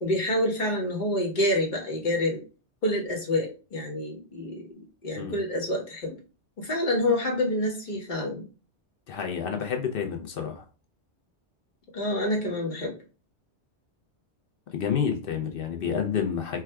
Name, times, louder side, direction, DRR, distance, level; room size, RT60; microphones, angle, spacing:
voice 1, 0.0-2.4 2.8-4.7 5.0-6.2 6.6-8.4 11.9-13.0, left 1 dB, 45° left, 1.1 m, -27 dB
voice 2, 9.1-10.7 14.7-16.6, left 7 dB, 60° left, 0.7 m, -29 dB
4.6 x 2.3 x 2.2 m
omnidirectional pair, 1.2 m